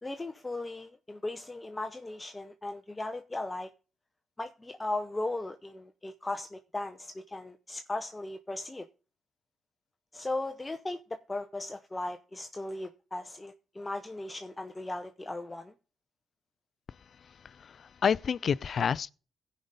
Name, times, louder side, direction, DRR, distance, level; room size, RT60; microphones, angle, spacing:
voice 1, 0.0-3.7 4.4-8.9 10.1-11.0 11.3-15.7, left 2 dB, 15° left, 0.7 m, -37 dB
voice 2, 17.2-19.1, left 7 dB, 50° left, 0.4 m, -30 dB
16.0 x 5.3 x 4.1 m
cardioid pair, 90°, 0 cm